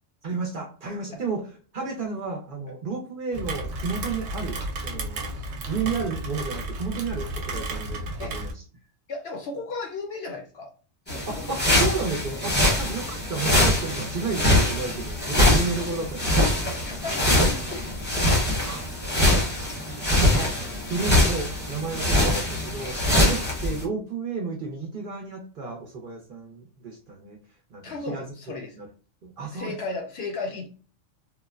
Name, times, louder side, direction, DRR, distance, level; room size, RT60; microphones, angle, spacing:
voice 1, 0.2-5.2 5.7-8.6 11.3-16.5 18.6-18.9 19.2-20.5 20.9-27.4 27.7-28.3 28.7-28.9 29.2-29.8, right 4 dB, 55° right, 1 dB, 0.7 m, -32 dB
Rain, 3.3-8.5, right 1 dB, 80° right, 0.9 m, -33 dB
voice 2, 9.1-10.7 11.1-11.6 12.6-12.8 15.3-15.4 16.5-17.9 23.0-23.3 27.8-28.8 29.5-30.7, left 3 dB, 65° left, 4 dB, 0.7 m, -35 dB
sound 1, 11.1-23.8, left 1 dB, 10° left, 0.7 m, -23 dB
3.0 x 2.0 x 2.3 m, 0.38 s
omnidirectional pair, 1.3 m